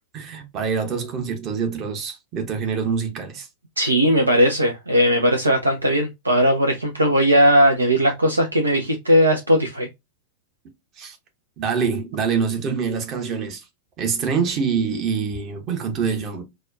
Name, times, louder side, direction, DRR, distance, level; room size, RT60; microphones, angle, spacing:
voice 1, 0.1-3.5 11.0-11.2 11.6-13.6 14.0-16.4, right 6 dB, 35° right, 0.9 m, -25 dB
voice 2, 3.8-9.9, equal, 80° right, 0.5 m, -18 dB
4.1 x 2.3 x 2.4 m
figure-of-eight pair, 90°, 0 cm